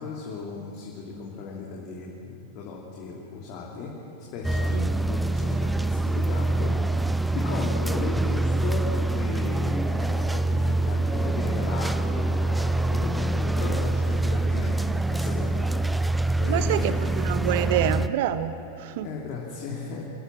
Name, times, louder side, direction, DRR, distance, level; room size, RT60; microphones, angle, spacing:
voice 1, 0.0-3.9 4.3-6.8 7.3-15.9 16.4-17.0 19.0-20.0, left 4 dB, 40° left, -3 dB, 2.8 m, -36 dB
sound 1, 4.4-18.1, right 2 dB, 5° right, 0.5 m, -25 dB
voice 2, 16.5-19.1, right 10 dB, 50° right, 13 dB, 0.9 m, -27 dB
27.5 x 14.5 x 7.5 m, 2.8 s
figure-of-eight pair, 90°, 0 cm